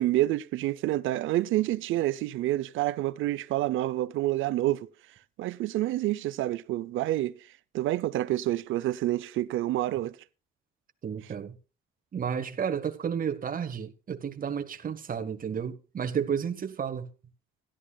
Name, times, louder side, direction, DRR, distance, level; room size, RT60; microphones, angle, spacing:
voice 1, 0.0-4.9 5.4-7.3 7.7-10.2, right 15 dB, 85° right, 0.7 m, -28 dB
voice 2, 11.0-11.6 12.1-17.1, right 7 dB, 45° right, 1.4 m, -32 dB
16.5 x 11.5 x 2.4 m
cardioid pair, 90°, 20 cm